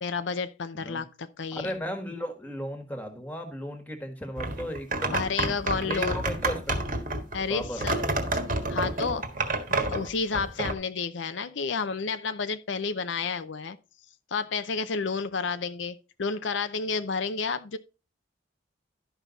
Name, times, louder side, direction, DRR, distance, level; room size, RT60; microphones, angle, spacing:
voice 1, 0.0-1.7 5.1-6.1 7.3-8.0 8.7-9.2 9.7-13.8 14.3-17.8, left 5 dB, 80° left, 0.6 m, -31 dB
voice 2, 1.5-6.8 7.5-8.2, equal, 10° left, 1.6 m, -36 dB
sound 1, 4.4-10.7, right 2 dB, 45° right, 1.5 m, -29 dB
12.0 x 5.7 x 4.0 m
head